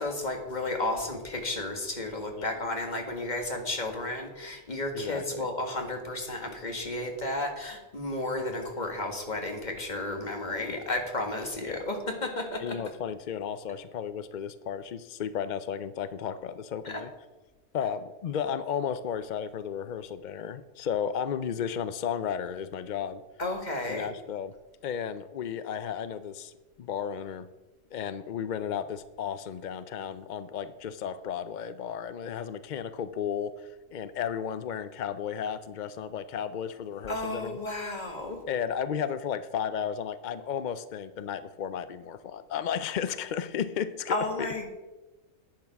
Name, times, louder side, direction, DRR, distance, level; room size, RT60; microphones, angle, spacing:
voice 1, 0.0-12.7 16.8-16.9 23.4-24.1 37.1-38.4 44.1-44.7, left 2 dB, 30° left, 3 dB, 1.8 m, -33 dB
voice 2, 4.9-5.5 10.7-10.8 11.7-11.8 12.6-17.1 17.7-23.2 23.9-24.5 24.8-26.5 26.8-27.5 27.9-33.5 33.9-37.6 38.5-44.5, left 8 dB, 70° left, 13 dB, 0.4 m, -33 dB
10.5 x 8.7 x 5.9 m, 1.1 s
omnidirectional pair, 1.4 m